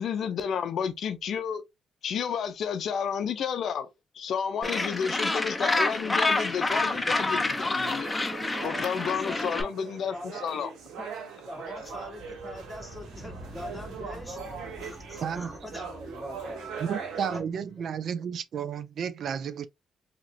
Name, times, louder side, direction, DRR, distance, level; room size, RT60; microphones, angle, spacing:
voice 1, 0.0-1.6 2.0-3.9 4.1-8.1 8.6-10.7, left 7 dB, 65° left, 0.5 m, -31 dB
Gull seagull, 4.6-9.6, left 2 dB, 15° left, 0.6 m, -28 dB
sound 1, 7.5-17.4, right 5 dB, 85° right, 1.0 m, -41 dB
voice 2, 8.7-9.7 10.1-10.4 11.0-11.1 11.4-14.4 14.8-16.9 17.3-17.4, equal, ahead, 1.6 m, -42 dB
sound 2, 11.7-18.1, right 1 dB, 35° right, 1.5 m, -47 dB
voice 3, 15.2-15.5 16.9-19.7, right 7 dB, 60° right, 0.3 m, -32 dB
2.9 x 2.8 x 2.6 m
cardioid pair, 90°, 0 cm